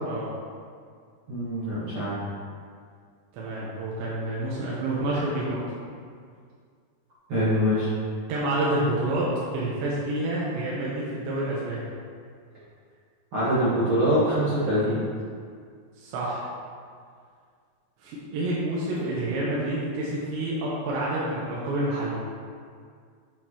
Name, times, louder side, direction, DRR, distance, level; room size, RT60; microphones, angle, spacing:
voice 1, 1.3-2.1 7.3-7.9 13.3-15.0, equal, 65° right, -12 dB, 1.3 m, -24 dB
voice 2, 3.3-5.6 8.3-11.8 16.0-16.4 18.0-22.2, right 1 dB, 85° right, -6 dB, 3.2 m, -28 dB
7.8 x 6.7 x 3.0 m, 2.1 s
omnidirectional pair, 5.0 m